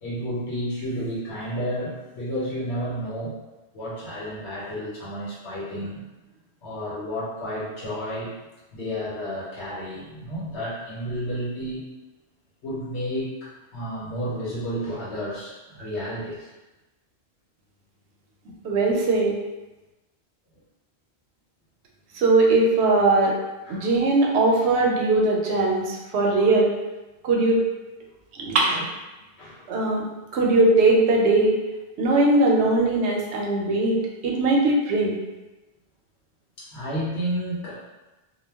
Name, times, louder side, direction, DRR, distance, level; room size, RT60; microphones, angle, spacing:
voice 1, 0.0-3.4 3.7-6.0 6.6-8.3 8.7-11.8 12.6-16.5 23.7-23.9 26.3-26.4 29.4-29.7 30.3-30.5 32.2-32.3 36.6-37.9, equal, 85° left, -7 dB, 1.1 m, -31 dB
voice 2, 18.6-19.4 22.1-23.3 23.7-26.7 27.2-27.6 28.3-28.9 29.7-30.1 30.3-31.6 32.0-35.2, right 2 dB, 85° right, -1 dB, 0.9 m, -20 dB
2.2 x 2.2 x 3.3 m, 1.1 s
omnidirectional pair, 1.1 m